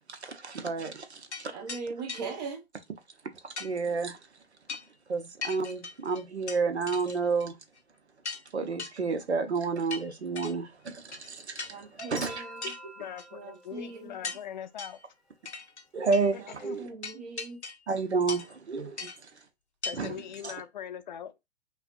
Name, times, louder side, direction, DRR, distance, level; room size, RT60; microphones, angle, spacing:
voice 1, 0.0-1.6 3.4-4.2 5.1-7.6 8.5-12.4 15.9-16.9 17.9-19.3 19.9-20.1 20.4-20.5, right 4 dB, 75° right, 0.8 m, -31 dB
sound 1, 1.3-1.4 1.7-2.2 3.6-3.7 4.7-4.9 5.4-6.6 6.9-7.5 7.8-7.9 8.2-8.5 8.8-8.9 9.9-10.5 11.1-11.3 11.6-12.2 12.6-12.8 13.2-13.3 14.2-14.4 14.8-15.0 15.5-15.8 16.1-16.3 17.0-17.9 18.3-18.6 19.0-19.2 19.8-20.0 20.3-20.4, left 4 dB, 90° left, 0.7 m, -39 dB
voice 2, 1.5-2.6 11.7-12.7 13.3-14.2 16.8-17.6, right 4 dB, 40° right, 0.9 m, -39 dB
Human group actions / Chink clink / Liquid, 12.2-14.5 16.0-16.1, equal, ahead, 0.9 m, -46 dB
voice 3, 12.6-15.0 16.6-16.8 19.8-21.3, left 9 dB, 45° left, 0.5 m, -41 dB
5.6 x 2.3 x 2.5 m
figure-of-eight pair, 110°, 33 cm